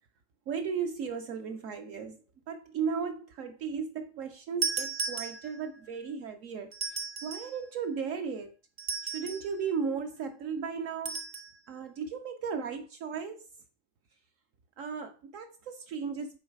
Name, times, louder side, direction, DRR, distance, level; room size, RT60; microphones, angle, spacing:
voice 1, 0.5-2.2 2.5-6.7 7.2-8.5 9.0-11.2 11.7-13.5 14.8-16.4, right 6 dB, 65° right, 1.0 m, -35 dB
sound 1, 4.6-5.8 6.7-7.6 8.8-9.5 11.1-11.5, right 5 dB, 45° right, 0.8 m, -35 dB
6.4 x 3.9 x 4.5 m
omnidirectional pair, 1.5 m